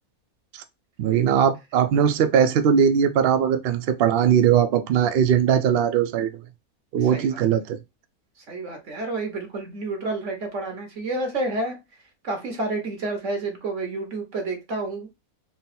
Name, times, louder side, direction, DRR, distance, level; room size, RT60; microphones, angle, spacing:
voice 1, 1.0-6.4 6.9-7.8, right 8 dB, 80° right, 0.5 m, -20 dB
voice 2, 7.0-7.4 8.4-11.8 12.2-15.1, right 2 dB, 55° right, 1.5 m, -30 dB
3.9 x 2.0 x 4.1 m
omnidirectional pair, 1.6 m